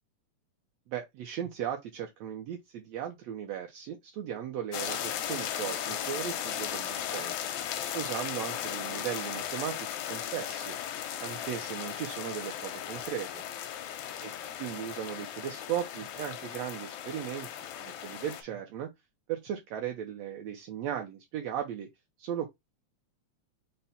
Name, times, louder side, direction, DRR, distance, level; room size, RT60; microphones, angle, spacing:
voice 1, 0.9-7.4 7.9-10.8 11.2-13.4 14.2-14.3 14.6-17.5 17.8-18.9 19.3-21.9 22.2-22.5, right 10 dB, 75° right, 1.6 m, -37 dB
sound 1, 4.7-18.4, left 10 dB, 80° left, 2.1 m, -36 dB
5.6 x 2.1 x 4.0 m
omnidirectional pair, 3.4 m